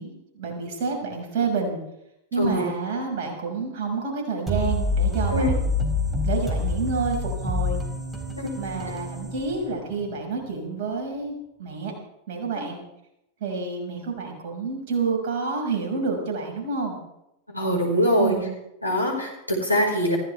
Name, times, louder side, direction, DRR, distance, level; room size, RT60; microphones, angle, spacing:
voice 1, 0.0-1.8 2.3-5.7 6.2-7.8 8.6-11.9 12.3-12.8 13.4-17.0 18.2-18.5, right 4 dB, 50° right, 0 dB, 5.9 m, -29 dB
sound 1, 4.5-10.1, left 2 dB, 10° right, 4.0 m, -27 dB
voice 2, 17.5-18.3 18.8-20.2, equal, 85° left, -1 dB, 5.0 m, -23 dB
24.5 x 15.5 x 3.5 m, 0.85 s
figure-of-eight pair, 90°, 0 cm